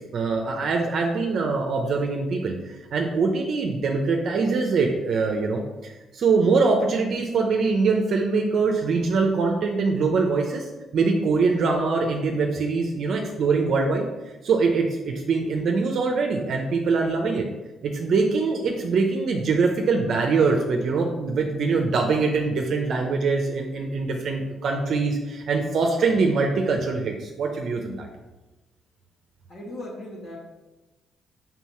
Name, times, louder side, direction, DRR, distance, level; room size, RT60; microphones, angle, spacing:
voice 1, 0.1-10.7 10.9-14.0 14.4-17.4 17.8-28.1, right 4 dB, 65° right, 2 dB, 0.7 m, -23 dB
voice 2, 29.5-30.4, left 1 dB, 55° left, -5 dB, 1.9 m, -37 dB
4.6 x 3.9 x 5.6 m, 1.1 s
cardioid pair, 90°, 0 cm